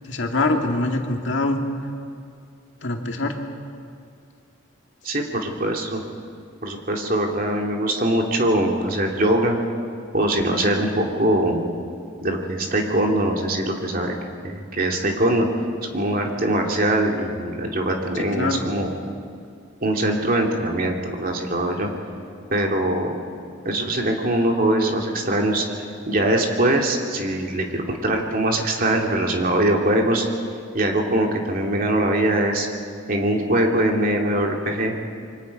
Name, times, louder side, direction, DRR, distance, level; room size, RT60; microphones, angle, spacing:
voice 1, 0.0-1.6 2.8-3.4 18.4-18.6, left 2 dB, 65° left, 2 dB, 2.1 m, -23 dB
voice 2, 5.0-6.0 6.6-9.6 10.1-11.6 12.2-14.2 14.4-15.5 15.9-18.9 19.8-21.9 22.5-23.2 23.6-30.2 30.7-32.7 33.1-34.9, right 1 dB, 45° right, 1 dB, 2.6 m, -22 dB
27.5 x 24.0 x 5.4 m, 2.3 s
head